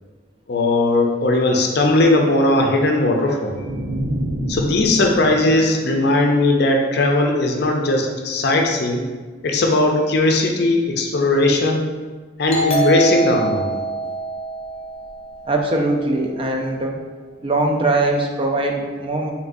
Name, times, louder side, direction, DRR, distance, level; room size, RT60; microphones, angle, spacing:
voice 1, 0.5-3.7 4.5-9.0 9.4-11.8 12.4-13.8, left 2 dB, 55° left, 2 dB, 0.5 m, -18 dB
sound 1, 3.5-6.7, right 1 dB, 60° right, 0.7 m, -28 dB
Doorbell, 12.5-15.8, right 3 dB, 30° left, 0.8 m, -24 dB
voice 2, 15.4-17.0 17.4-19.3, right 2 dB, 30° right, 2 dB, 0.4 m, -21 dB
5.1 x 3.2 x 2.6 m, 1.4 s
head